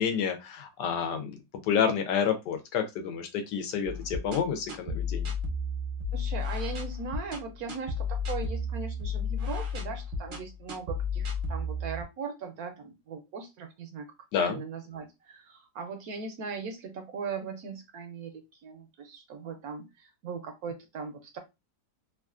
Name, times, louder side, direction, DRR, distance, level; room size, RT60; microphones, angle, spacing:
voice 1, 0.0-1.4 1.6-5.3 14.3-14.6, left 7 dB, 80° left, 6 dB, 1.2 m, -29 dB
sound 1, 3.8-12.0, left 3 dB, 45° right, 0.7 m, -33 dB
voice 2, 6.1-14.1 14.4-21.4, right 5 dB, 70° right, 5 dB, 1.0 m, -39 dB
3.1 x 2.4 x 2.3 m, 0.23 s
omnidirectional pair, 1.9 m